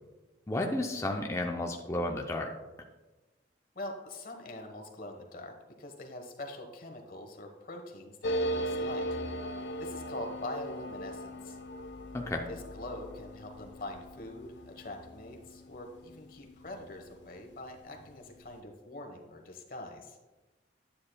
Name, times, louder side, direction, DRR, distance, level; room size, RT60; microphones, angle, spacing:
voice 1, 0.5-2.5 12.1-12.5, left 1 dB, 15° left, 1 dB, 0.5 m, -32 dB
voice 2, 3.7-9.1 9.8-11.6 12.5-20.2, left 1 dB, 55° left, 3 dB, 1.2 m, -44 dB
sound 1, 8.2-17.4 17.7-17.8 18.0-18.6, equal, 85° left, 0.6 m, -38 dB
9.8 x 8.5 x 2.2 m, 1.2 s
head